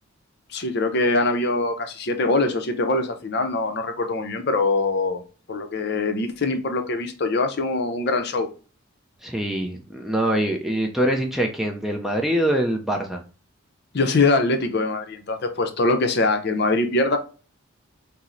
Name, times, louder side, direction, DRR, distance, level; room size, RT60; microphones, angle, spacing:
voice 1, 0.5-5.2 5.5-8.5 13.9-17.2, left 2 dB, 50° left, 7 dB, 0.5 m, -23 dB
voice 2, 9.2-13.2, right 1 dB, ahead, 1 dB, 0.4 m, -24 dB
4.3 x 2.0 x 3.7 m, 0.35 s
head